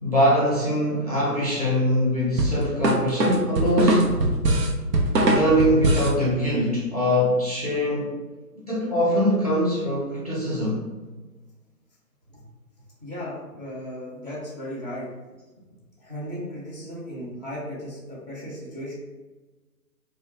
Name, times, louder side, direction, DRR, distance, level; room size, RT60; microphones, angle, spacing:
voice 1, 0.0-4.2 5.2-8.2 8.5-10.8, equal, 25° left, -7 dB, 0.5 m, -23 dB
sound 1, 2.4-6.2, right 2 dB, 85° right, 0.7 m, -21 dB
voice 2, 13.0-15.1 16.0-19.0, equal, 30° right, -5 dB, 0.4 m, -36 dB
2.6 x 2.1 x 2.9 m, 1.2 s
figure-of-eight pair, 140°, 48 cm